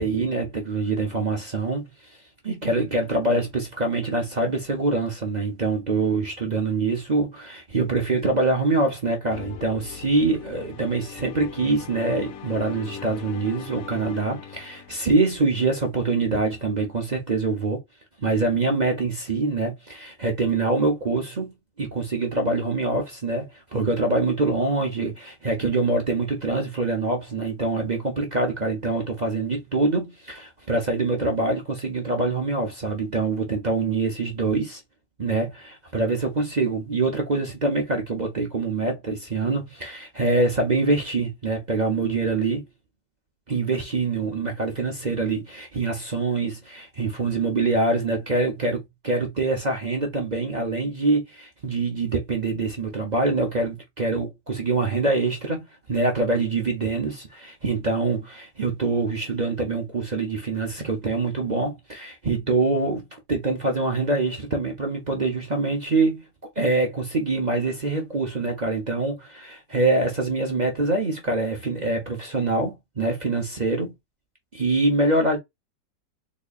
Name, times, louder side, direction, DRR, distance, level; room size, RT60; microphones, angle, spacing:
voice 1, 0.0-2.2 2.4-17.8 18.2-21.5 21.8-34.8 35.2-42.6 43.5-66.2 66.6-73.9 74.5-75.4, right 3 dB, 40° right, 0.6 m, -25 dB
sound 1, 9.3-15.7, left 7 dB, 65° left, 1.0 m, -40 dB
4.0 x 2.9 x 2.4 m
omnidirectional pair, 1.9 m